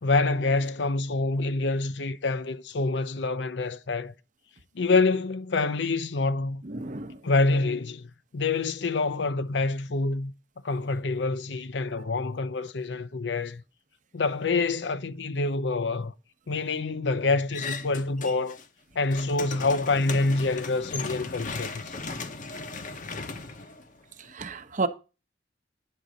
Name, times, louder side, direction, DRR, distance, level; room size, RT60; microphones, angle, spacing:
voice 1, 0.0-4.1 4.7-6.6 7.2-10.3 10.6-13.6 14.1-16.1 16.5-18.6 19.0-22.0, left 3 dB, 75° left, 0.6 m, -26 dB
voice 2, 6.6-7.2 24.2-24.9, right 3 dB, 45° right, 0.8 m, -31 dB
sound 1, 17.5-18.6 18.9-24.3, left 4 dB, 50° left, 0.9 m, -37 dB
10.0 x 4.0 x 6.3 m
head